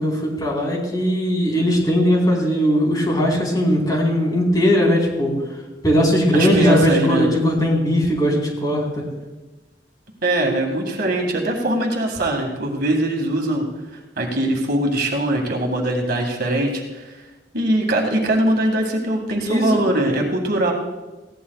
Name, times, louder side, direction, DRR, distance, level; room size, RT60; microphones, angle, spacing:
voice 1, 0.0-5.3 5.8-9.0 19.4-19.8, equal, 25° left, -3 dB, 4.1 m, -19 dB
voice 2, 6.3-7.3 10.2-13.7 14.2-17.1 17.5-20.7, right 1 dB, 60° right, 1 dB, 2.0 m, -21 dB
20.0 x 16.5 x 2.4 m, 1.2 s
head